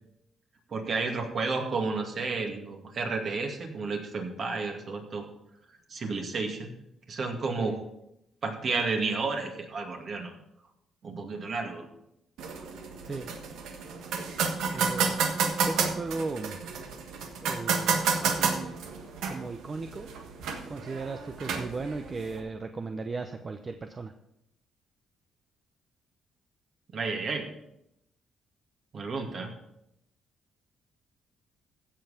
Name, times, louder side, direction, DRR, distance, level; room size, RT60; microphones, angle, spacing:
voice 1, 0.7-5.3 5.9-6.7 7.1-7.8 8.4-10.3 11.0-11.9 26.9-27.5 28.9-29.5, right 4 dB, 50° right, 2 dB, 2.3 m, -31 dB
sound 1, 12.4-22.4, right 5 dB, 85° right, 1.4 m, -31 dB
voice 2, 14.7-15.2 15.6-16.6 17.4-18.8 19.3-20.1 20.7-24.1, right 3 dB, 35° right, 7 dB, 0.8 m, -36 dB
15.5 x 5.6 x 5.8 m, 0.82 s
cardioid pair, 90°, 0 cm